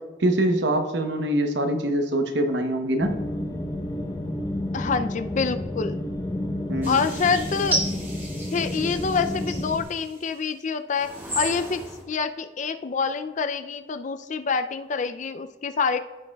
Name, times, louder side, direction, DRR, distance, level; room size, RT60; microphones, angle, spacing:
voice 1, 0.2-3.1 6.7-7.0, right 1 dB, 70° right, 6 dB, 0.9 m, -24 dB
sound 1, 3.0-9.8, left 1 dB, 20° left, 1.0 m, -30 dB
voice 2, 4.7-6.0 6.8-7.8 8.5-11.1 11.4-11.8 12.1-16.0, left 5 dB, 40° left, 10 dB, 0.4 m, -26 dB
sound 2, 6.8-10.3 10.9-12.0, right 1 dB, 10° right, 1.4 m, -33 dB
15.0 x 5.2 x 2.3 m, 1.3 s
head